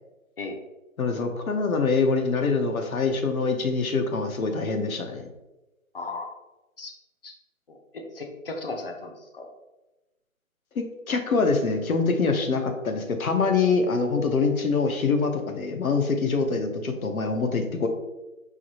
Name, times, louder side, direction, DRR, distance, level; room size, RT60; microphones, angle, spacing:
voice 1, 1.0-5.2 10.7-17.9, left 4 dB, 80° left, 5 dB, 0.8 m, -24 dB
voice 2, 5.9-6.3 6.8-6.9 7.2-7.3 7.7-9.5, left 3 dB, 45° left, 4 dB, 0.5 m, -36 dB
4.7 x 2.6 x 2.9 m, 1.0 s
hypercardioid pair, 160°, 42 cm